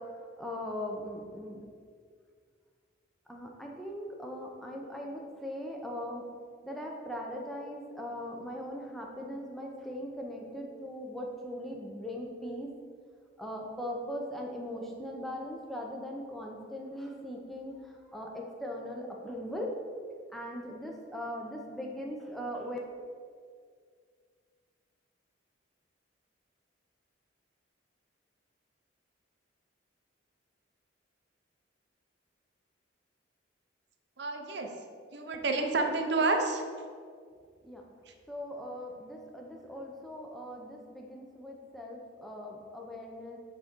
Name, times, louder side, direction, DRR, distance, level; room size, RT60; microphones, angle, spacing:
voice 1, 0.0-1.6 3.3-6.3 6.6-12.7 13.4-19.7 20.3-22.8 35.3-35.6 36.1-36.3 37.6-37.8 38.3-43.4, equal, ahead, -1 dB, 0.7 m, -40 dB
voice 2, 34.2-34.7 35.1-36.6 38.1-38.2, right 3 dB, 60° right, 4 dB, 0.7 m, -29 dB
6.2 x 3.9 x 6.1 m, 2.1 s
head